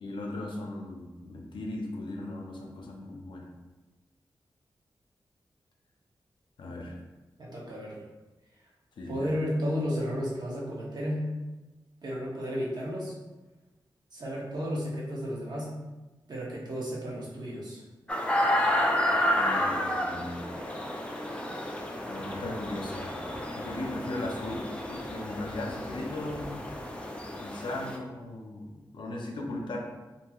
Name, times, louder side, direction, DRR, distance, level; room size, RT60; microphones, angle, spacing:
voice 1, 0.0-3.5 6.6-7.0 9.0-9.3 19.3-20.6 22.1-23.1 23.6-26.5 27.4-29.8, left 2 dB, 70° left, 0 dB, 0.5 m, -37 dB
voice 2, 7.4-8.0 9.1-11.3 12.0-13.1 14.1-15.7 16.3-17.8, equal, 55° right, -4 dB, 0.8 m, -33 dB
sound 1, 18.1-28.0, left 1 dB, 15° left, 0.4 m, -31 dB
2.9 x 2.6 x 2.3 m, 1.1 s
wide cardioid pair, 85°, 8 cm